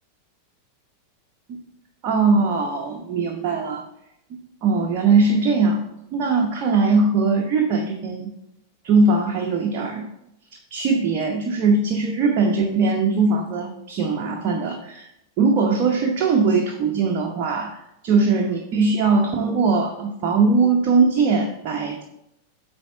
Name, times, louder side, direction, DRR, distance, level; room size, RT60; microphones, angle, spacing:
voice 1, 2.0-3.8 4.6-5.8 6.1-8.3 8.8-10.1 10.7-15.1 15.4-22.0, right 4 dB, 40° right, 1 dB, 0.9 m, -20 dB
8.6 x 3.5 x 5.6 m, 0.81 s
figure-of-eight pair, 90°, 0 cm